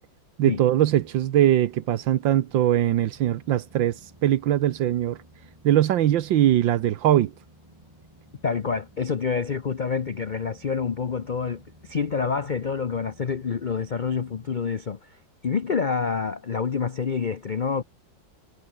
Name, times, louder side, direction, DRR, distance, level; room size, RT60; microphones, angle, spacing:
voice 1, 0.4-4.0 4.2-5.2 5.6-7.3, right 12 dB, 85° right, 1.7 m, -21 dB
sound 1, 0.9-14.6, right 1 dB, 15° right, 4.1 m, -54 dB
voice 2, 8.4-15.1 15.4-17.8, left 5 dB, 85° left, 0.4 m, -27 dB
omnidirectional pair, 2.0 m